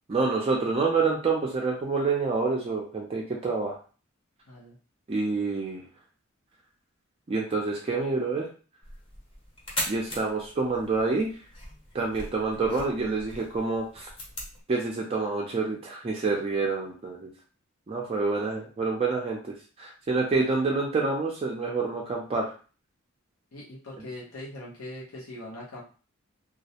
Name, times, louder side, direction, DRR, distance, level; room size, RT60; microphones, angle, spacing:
voice 1, 0.1-3.8 5.1-5.9 7.3-8.5 9.9-11.3 11.9-14.1 14.7-17.3 17.9-19.4 19.8-22.5, right 4 dB, 30° right, -1 dB, 0.4 m, -27 dB
sound 1, 8.8-14.6, left 1 dB, 25° left, 0.7 m, -39 dB
voice 2, 23.5-25.8, left 1 dB, 80° left, -5 dB, 0.8 m, -41 dB
2.3 x 2.0 x 2.7 m, 0.37 s
head